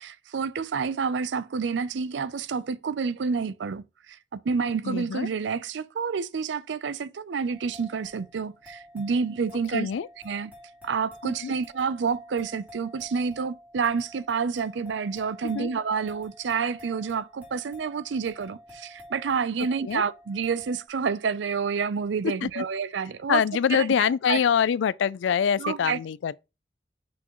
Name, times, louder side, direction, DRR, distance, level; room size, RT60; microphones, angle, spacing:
voice 1, 0.0-9.9 10.2-10.5 10.8-23.4 23.7-24.4 25.6-26.0, right 5 dB, 75° right, 0.4 m, -29 dB
voice 2, 4.9-5.3 9.7-10.1 11.2-11.5 15.5-15.7 19.8-20.0 22.4-22.6 23.3-26.4, left 7 dB, 80° left, 0.3 m, -25 dB
sound 1, 7.5-20.9, left 1 dB, 10° right, 2.9 m, -49 dB
6.0 x 5.9 x 3.0 m
head